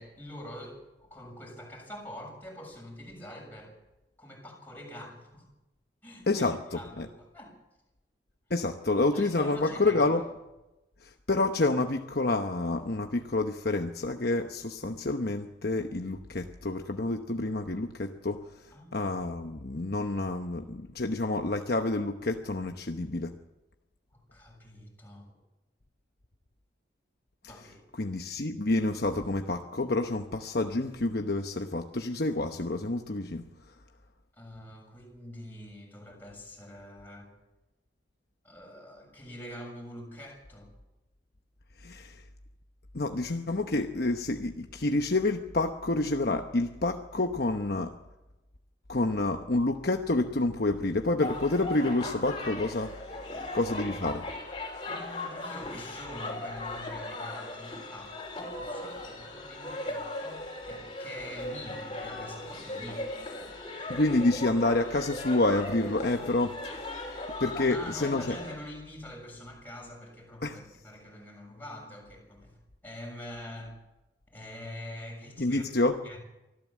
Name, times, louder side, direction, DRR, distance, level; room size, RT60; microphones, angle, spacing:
voice 1, 0.0-3.7 4.2-5.4 6.0-7.5 9.1-10.2 18.7-19.1 24.1-25.3 27.4-27.8 34.3-37.3 38.4-40.7 54.9-63.1 67.7-72.6 72.8-73.8 74.3-75.6 76.0-76.2, left 1 dB, 10° left, -1 dB, 7.1 m, -45 dB
voice 2, 6.3-7.1 8.5-10.2 11.0-18.4 18.9-23.3 28.0-33.4 41.8-42.2 42.9-47.9 48.9-53.0 53.5-54.3 63.9-66.6 67.4-68.4 70.4-70.6 75.4-76.0, left 2 dB, 55° left, 5 dB, 1.0 m, -28 dB
sound 1, 51.2-68.5, left 2 dB, 25° left, 4.8 m, -38 dB
24.5 x 14.5 x 7.5 m, 0.99 s
head